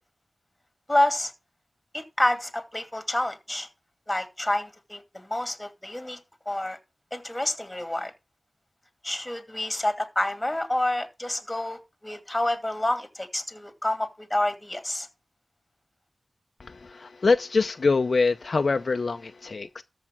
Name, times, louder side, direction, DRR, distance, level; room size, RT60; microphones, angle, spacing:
voice 1, 0.9-1.3 1.9-3.7 4.1-6.2 6.5-6.8 7.1-8.1 9.0-15.1, left 1 dB, 15° left, 2.4 m, -28 dB
voice 2, 16.6-19.8, left 4 dB, 60° left, 0.6 m, -24 dB
13.5 x 4.8 x 6.1 m
wide cardioid pair, 75°, 0 cm